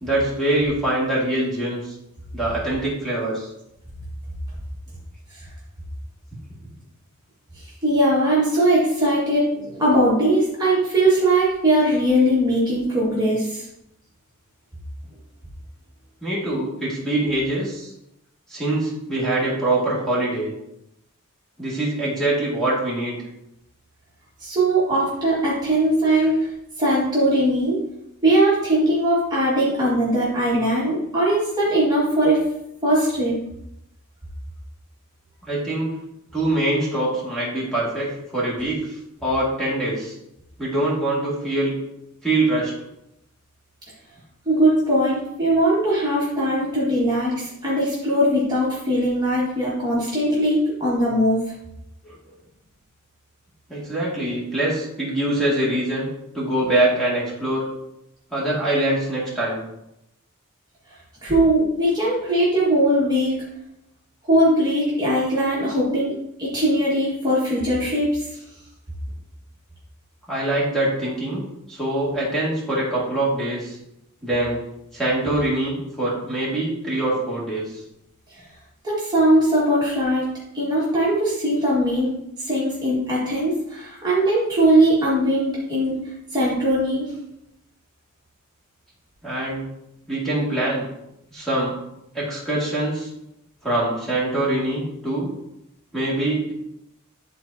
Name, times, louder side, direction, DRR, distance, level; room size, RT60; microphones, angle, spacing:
voice 1, 0.0-1.9 2.3-3.5 16.2-17.9 18.5-20.5 21.6-23.2 35.5-35.9 36.3-38.8 39.2-40.1 40.6-41.8 42.2-42.7 52.0-52.2 53.7-56.1 56.3-57.7 58.3-59.7 70.3-71.4 71.7-73.8 74.2-74.6 74.9-77.7 89.2-89.6 90.1-90.9 91.3-91.7 92.1-93.1 93.6-95.3 95.9-96.5, right 1 dB, ahead, -7 dB, 2.1 m, -24 dB
voice 2, 7.8-13.7 24.4-26.5 26.8-27.8 28.2-32.4 32.8-33.4 44.5-51.4 61.2-63.4 64.2-68.3 78.8-82.1 82.5-86.0 86.3-87.1, right 1 dB, 20° right, -8 dB, 1.7 m, -20 dB
11.0 x 4.0 x 2.7 m, 0.83 s
head